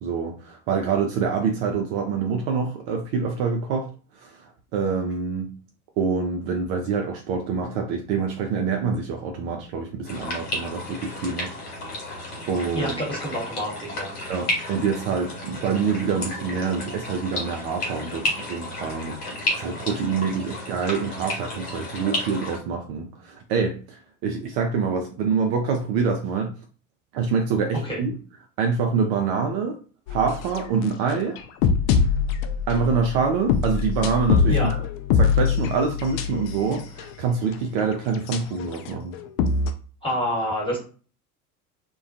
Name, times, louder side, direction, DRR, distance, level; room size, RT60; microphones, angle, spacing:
voice 1, 0.0-3.9 4.2-5.5 6.0-11.9 12.5-12.9 14.3-19.2 19.6-26.5 27.1-28.2 28.6-29.8 30.1-31.4 32.7-34.8 35.2-39.1, right 5 dB, 50° right, 3 dB, 0.5 m, -26 dB
sound 1, 10.1-22.6, left 1 dB, 80° left, 1.1 m, -32 dB
voice 2, 12.7-14.1 27.8-28.0 34.5-34.7 40.0-40.8, equal, 10° left, -3 dB, 1.3 m, -27 dB
sound 2, 30.1-37.0 37.5-37.6 38.3-39.7, left 6 dB, 45° left, 0.4 m, -23 dB
2.3 x 2.2 x 2.6 m, 0.37 s
figure-of-eight pair, 70°, 45 cm